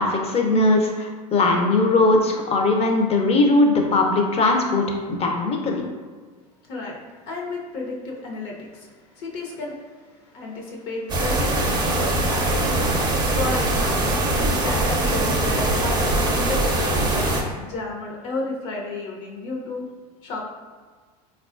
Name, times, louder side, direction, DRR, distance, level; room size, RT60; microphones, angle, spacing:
voice 1, 0.0-5.8, left 2 dB, 30° left, 2 dB, 0.6 m, -20 dB
voice 2, 6.7-7.0 7.3-19.8 20.2-20.5, left 2 dB, 60° left, -1 dB, 0.8 m, -33 dB
sound 1, 11.1-17.4, right 2 dB, 20° right, 0.6 m, -22 dB
3.5 x 2.3 x 2.4 m, 1.5 s
hypercardioid pair, 90°, 20 cm